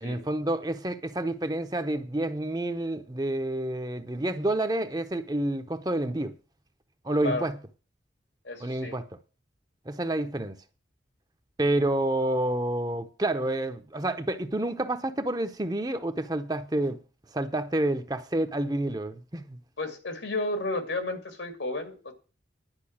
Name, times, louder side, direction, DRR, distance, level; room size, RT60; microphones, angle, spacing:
voice 1, 0.0-6.3 7.0-7.5 8.6-9.0 9.9-10.6 11.6-17.0 17.3-19.6, right 1 dB, 20° right, 0.8 m, -29 dB
voice 2, 8.4-8.9 19.8-22.1, left 2 dB, 80° left, 2.5 m, -32 dB
11.0 x 5.4 x 8.6 m
head